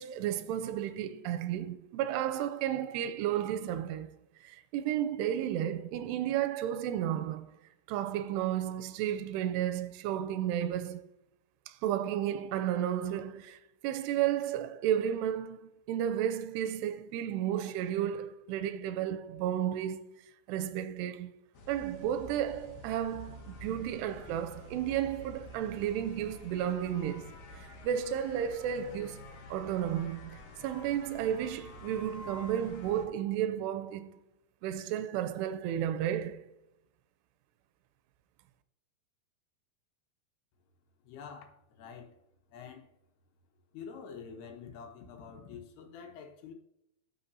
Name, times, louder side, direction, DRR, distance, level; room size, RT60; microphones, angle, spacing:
voice 1, 0.0-4.1 4.4-7.5 7.9-11.1 11.7-20.1 20.5-21.3 21.7-29.3 29.5-34.1 34.6-36.5, right 10 dB, 85° right, 2.6 m, -33 dB
sound 1, 21.5-33.0, left 1 dB, 60° left, 2.4 m, -49 dB
voice 2, 41.0-42.1 42.5-42.9 43.7-46.5, left 6 dB, 75° left, 3.0 m, -47 dB
13.5 x 6.3 x 2.7 m
omnidirectional pair, 4.8 m